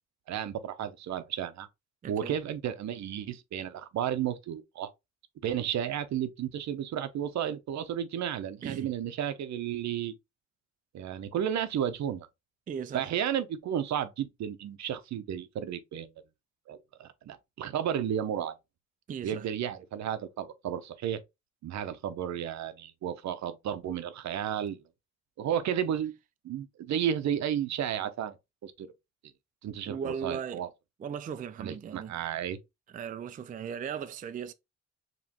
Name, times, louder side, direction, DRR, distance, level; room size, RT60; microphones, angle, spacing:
voice 1, 0.3-1.7 2.1-4.9 5.4-10.1 10.9-12.3 12.9-16.1 16.7-18.5 19.2-21.2 21.6-24.8 25.4-26.1 26.4-28.4 28.6-28.9 29.6-30.7 31.6-32.6, right 9 dB, 65° right, 0.7 m, -33 dB
voice 2, 2.0-2.4 8.6-8.9 12.7-13.1 19.1-19.5 29.8-30.7 31.0-32.1 32.9-34.5, right 7 dB, 30° right, 0.4 m, -37 dB
5.1 x 3.1 x 2.9 m
cardioid pair, 90°, 30 cm